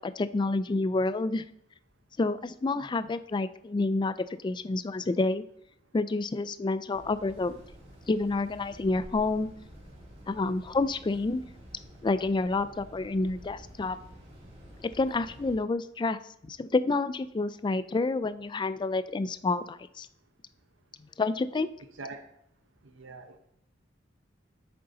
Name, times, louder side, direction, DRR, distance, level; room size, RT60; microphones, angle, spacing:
voice 1, 0.0-1.4 2.2-4.1 4.4-5.4 5.9-7.6 8.1-9.5 10.3-11.4 12.0-14.0 15.0-16.2 16.5-20.1 21.2-21.7, left 3 dB, 25° left, 14 dB, 0.3 m, -28 dB
sound 1, 6.9-15.6, equal, 35° right, 2.8 m, -50 dB
voice 2, 21.9-22.2 22.8-23.4, right 3 dB, 75° right, 7 dB, 0.8 m, -44 dB
9.3 x 6.8 x 3.9 m, 0.74 s
head